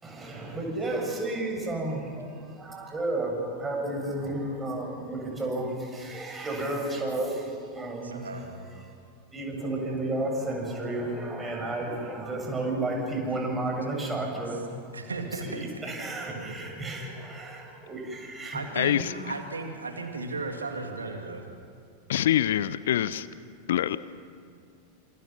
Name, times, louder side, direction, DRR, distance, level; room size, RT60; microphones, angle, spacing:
voice 1, 0.0-8.4 9.3-15.0 15.4-18.6, right 2 dB, 15° right, 0 dB, 7.4 m, -32 dB
voice 2, 8.0-8.5 14.9-15.7 16.3-16.5 18.5-21.5, right 3 dB, 75° right, 4 dB, 2.8 m, -35 dB
voice 3, 18.8-19.1 22.1-23.3 23.7-24.0, left 11 dB, 60° left, 16 dB, 0.7 m, -25 dB
29.0 x 27.0 x 6.1 m, 2.3 s
figure-of-eight pair, 90°, 0 cm